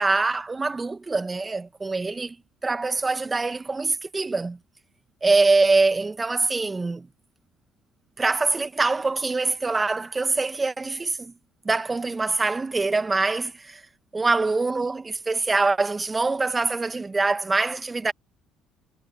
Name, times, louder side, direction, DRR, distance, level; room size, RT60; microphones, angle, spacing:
voice 1, 0.0-2.4 2.6-4.6 5.2-7.1 8.2-11.3 11.6-13.8 14.1-18.1, right 3 dB, 25° right, 1.1 m, -24 dB
supercardioid pair, 65°, 0 cm